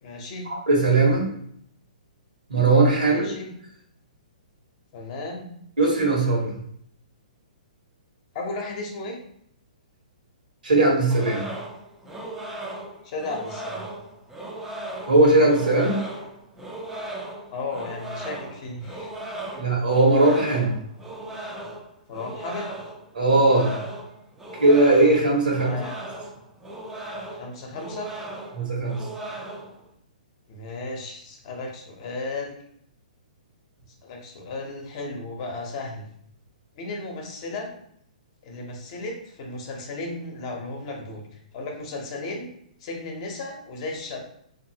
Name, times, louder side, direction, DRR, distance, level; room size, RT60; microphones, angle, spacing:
voice 1, 0.0-0.5 3.0-3.5 4.9-5.5 8.3-9.2 13.0-13.9 17.5-19.1 19.5-19.6 22.1-22.7 25.5-26.0 27.3-28.1 30.5-32.6 34.0-36.1 36.8-37.7 38.4-41.2 41.5-42.5 42.8-44.2, left 2 dB, 45° left, 1 dB, 0.7 m, -34 dB
voice 2, 0.7-1.3 2.5-3.3 5.8-6.6 10.6-11.4 15.1-16.0 19.6-20.7 23.1-23.8 24.6-25.8 28.5-29.0, right 2 dB, 90° right, -1 dB, 1.2 m, -19 dB
sound 1, 11.1-29.8, right 1 dB, 5° right, 0.4 m, -37 dB
2.7 x 2.6 x 2.8 m, 0.69 s
hypercardioid pair, 135°, 4 cm